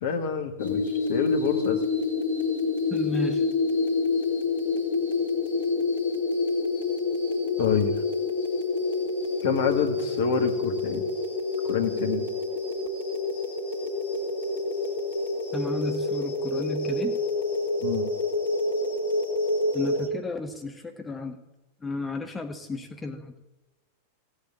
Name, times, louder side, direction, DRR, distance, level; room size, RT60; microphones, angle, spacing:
voice 1, 0.0-0.8 1.1-1.8 7.6-7.9 9.4-11.0 11.6-12.3 17.8-18.1, left 6 dB, 55° left, 6 dB, 1.9 m, -27 dB
sound 1, 0.6-20.1, left 3 dB, 75° left, 2.2 m, -27 dB
voice 2, 2.9-3.5 15.5-17.2 19.7-21.4 21.8-23.3, left 3 dB, 15° left, 5 dB, 1.2 m, -33 dB
16.0 x 8.3 x 8.2 m, 1.0 s
figure-of-eight pair, 90°, 0 cm